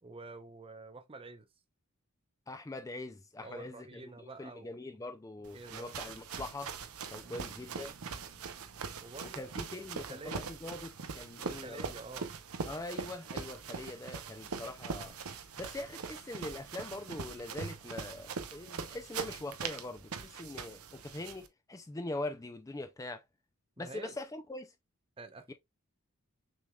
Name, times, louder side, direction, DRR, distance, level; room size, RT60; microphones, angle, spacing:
voice 1, 0.0-1.5 3.4-5.0 5.5-5.9 7.3-7.6 9.0-9.4 9.9-10.6 11.4-12.4 23.8-24.2 25.2-25.5, right 3 dB, 25° right, 0.6 m, -48 dB
voice 2, 2.5-6.7 7.1-7.9 9.3-11.9 12.7-15.2 15.6-23.2 23.8-24.7 25.5-25.6, left 2 dB, 15° left, 0.4 m, -42 dB
sound 1, 5.4-21.5, right 5 dB, 85° right, 0.7 m, -42 dB
Bass guitar, 7.2-11.1, right 4 dB, 60° right, 1.8 m, -61 dB
6.4 x 3.4 x 2.3 m
head